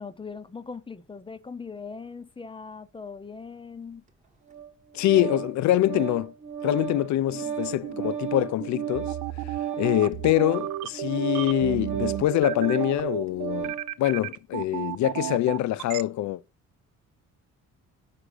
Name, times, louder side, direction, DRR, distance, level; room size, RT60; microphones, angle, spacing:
voice 1, 0.0-4.0 7.4-8.1, left 5 dB, 15° left, 0.6 m, -40 dB
Organ, 4.5-13.9, right 7 dB, 25° right, 1.1 m, -35 dB
voice 2, 4.9-6.3 6.6-9.2 9.8-16.4, left 14 dB, 70° left, 0.4 m, -25 dB
sound 1, 7.6-16.0, right 14 dB, 80° right, 0.5 m, -32 dB
5.0 x 4.9 x 5.0 m
cardioid pair, 90°, 30 cm